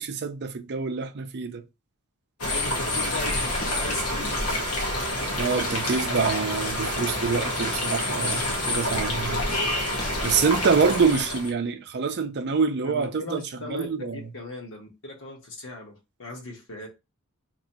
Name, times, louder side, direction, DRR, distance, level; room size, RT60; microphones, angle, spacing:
voice 1, 0.0-1.6 5.4-9.4 10.2-14.2, right 5 dB, 50° right, 0.5 m, -26 dB
sound 1, 2.4-11.5, left 1 dB, 75° left, 1.1 m, -27 dB
voice 2, 2.4-4.8 12.8-16.9, left 2 dB, 60° left, 1.3 m, -38 dB
sound 2, 2.5-10.5, left 2 dB, 35° left, 0.8 m, -44 dB
3.0 x 2.8 x 4.1 m
head